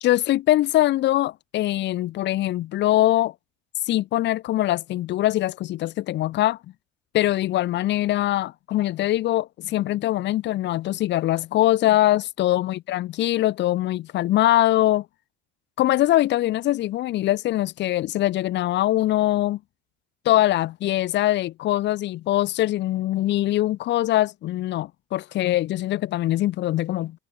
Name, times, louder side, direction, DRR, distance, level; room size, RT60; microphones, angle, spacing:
voice 1, 0.0-3.3 3.9-6.6 7.1-15.1 15.8-19.6 20.3-27.2, left 15 dB, 40° left, 0.4 m, -22 dB
cardioid pair, 135°, 30 cm